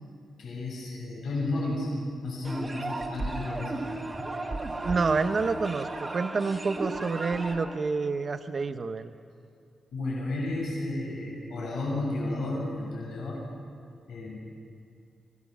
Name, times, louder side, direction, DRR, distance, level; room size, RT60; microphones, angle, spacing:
voice 1, 0.4-1.9 2.2-3.7 9.9-13.4 14.1-14.4, left 2 dB, 80° left, -3 dB, 6.8 m, -32 dB
sound 1, 2.4-7.8, right 2 dB, 20° right, 2.0 m, -35 dB
voice 2, 4.8-9.1, right 4 dB, 35° right, 9 dB, 0.8 m, -28 dB
25.0 x 18.0 x 6.9 m, 2.4 s
wide cardioid pair, 150°, 0 cm